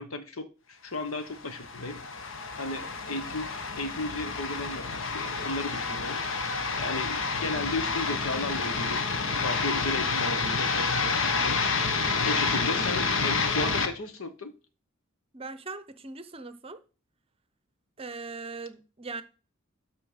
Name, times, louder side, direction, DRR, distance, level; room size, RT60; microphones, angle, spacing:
voice 1, 0.0-6.5 6.8-9.1 9.4-11.6 12.2-14.5, left 2 dB, 85° left, 1.1 m, -35 dB
sound 1, 1.3-13.9, left 4 dB, 65° left, 1.0 m, -29 dB
voice 2, 15.3-16.8 18.0-19.2, right 3 dB, 30° right, 0.7 m, -40 dB
12.5 x 4.3 x 5.0 m
head